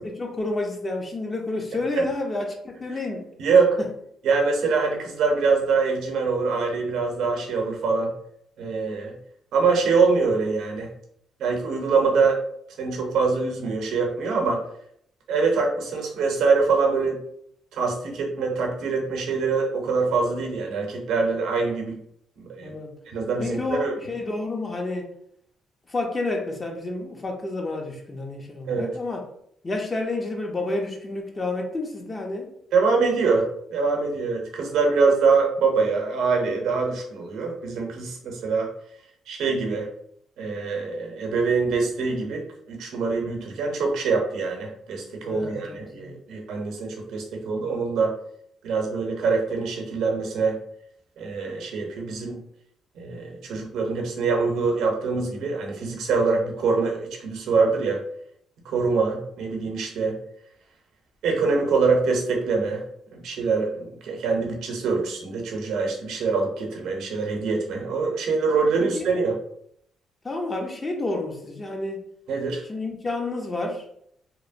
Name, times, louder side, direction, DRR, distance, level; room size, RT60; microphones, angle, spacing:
voice 1, 0.0-3.3 22.6-22.9 23.4-25.1 25.9-29.3 29.6-32.5 45.2-46.1 68.8-68.9 70.2-72.0 72.7-73.8, left 2 dB, 30° left, 2 dB, 0.5 m, -30 dB
voice 2, 3.4-3.8 4.2-8.1 8.6-9.1 9.5-10.9 11.4-12.4 12.8-14.6 15.3-17.2 17.7-21.9 22.4-22.7 23.1-23.9 28.7-28.9 32.7-38.7 39.3-39.9 40.4-48.1 48.6-50.6 51.2-52.4 52.9-58.0 58.6-60.2 61.2-62.8 63.2-69.4 72.3-72.6, right 4 dB, 80° right, 1 dB, 0.7 m, -24 dB
2.9 x 2.1 x 2.5 m, 0.69 s
cardioid pair, 90°, 0 cm